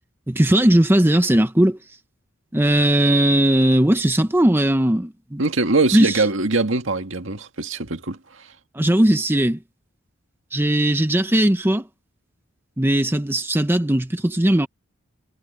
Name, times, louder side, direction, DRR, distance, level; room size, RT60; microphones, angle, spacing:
voice 1, 0.3-1.8 2.5-5.4 5.9-6.2 8.7-9.6 10.5-11.8 12.8-14.7, right 1 dB, 10° right, 0.8 m, -18 dB
voice 2, 5.4-8.2, right 3 dB, 65° right, 2.0 m, -22 dB
head